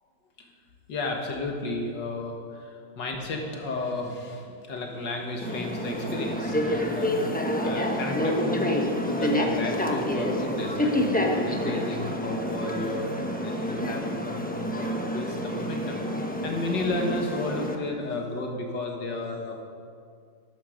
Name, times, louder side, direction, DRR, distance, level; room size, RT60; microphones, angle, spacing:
voice 1, 0.9-7.3 7.6-13.1 13.4-16.0 16.4-19.6, left 2 dB, 70° left, 1 dB, 2.1 m, -33 dB
sound 1, 5.4-17.8, left 1 dB, 10° left, 0.4 m, -28 dB
12.5 x 11.5 x 5.1 m, 2.2 s
omnidirectional pair, 2.0 m